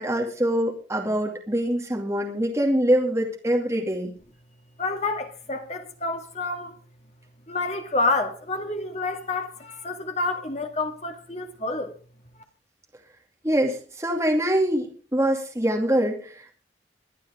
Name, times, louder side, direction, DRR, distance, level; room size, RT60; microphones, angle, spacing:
voice 1, 0.0-4.1 13.4-16.5, right 1 dB, 15° right, 2.5 m, -24 dB
voice 2, 4.8-6.7 7.5-12.0, left 3 dB, 35° left, 2.1 m, -28 dB
23.0 x 9.9 x 3.7 m
head